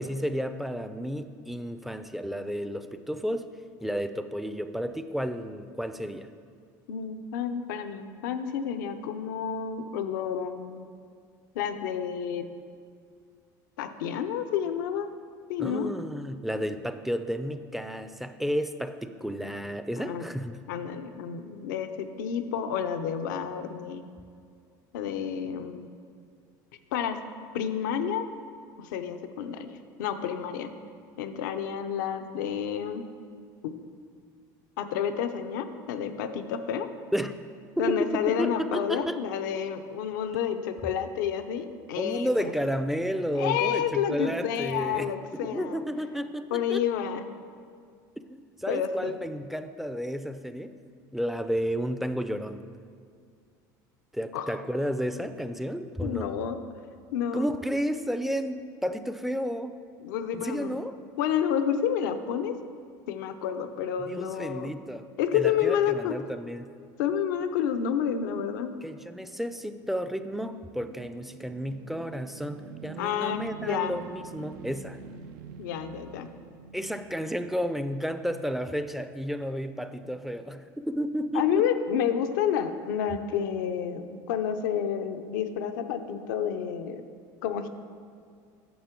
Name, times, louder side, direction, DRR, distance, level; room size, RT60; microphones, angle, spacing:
voice 1, 0.0-3.5 3.8-6.3 15.6-20.6 37.1-37.4 37.8-39.2 42.0-46.8 48.3-50.8 51.1-52.6 54.1-56.3 57.3-59.8 60.3-60.9 64.0-66.7 68.8-75.0 76.7-81.7, equal, ahead, 10 dB, 0.4 m, -32 dB
voice 2, 6.9-10.9 11.5-12.5 13.8-15.1 15.5-15.9 20.0-20.3 20.7-24.0 24.9-25.9 26.9-27.2 27.5-28.3 28.8-29.7 30.0-30.7 31.2-33.1 33.6-33.7 34.8-36.9 37.8-42.5 43.4-45.8 46.5-47.2 48.7-49.1 54.3-54.6 56.0-56.6 57.1-57.5 60.0-60.8 61.2-62.6 63.1-64.7 65.2-66.1 67.0-68.7 73.0-73.9 75.6-76.3 81.3-87.1 87.4-87.7, left 8 dB, 85° left, 8 dB, 0.6 m, -30 dB
sound 1, 69.3-78.6, right 7 dB, 80° right, 0.5 m, -47 dB
9.3 x 6.6 x 4.5 m, 2.3 s
supercardioid pair, 105°, 10 cm